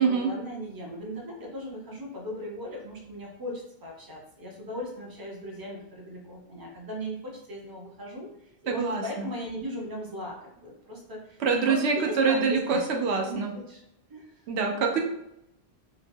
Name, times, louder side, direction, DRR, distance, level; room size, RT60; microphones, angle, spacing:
voice 1, 0.0-13.8 14.1-14.4 14.7-15.0, equal, 25° right, -2 dB, 0.5 m, -38 dB
voice 2, 8.7-9.3 11.4-13.5 14.5-15.0, right 5 dB, 80° right, 3 dB, 0.8 m, -25 dB
2.9 x 2.0 x 2.6 m, 0.82 s
omnidirectional pair, 1.1 m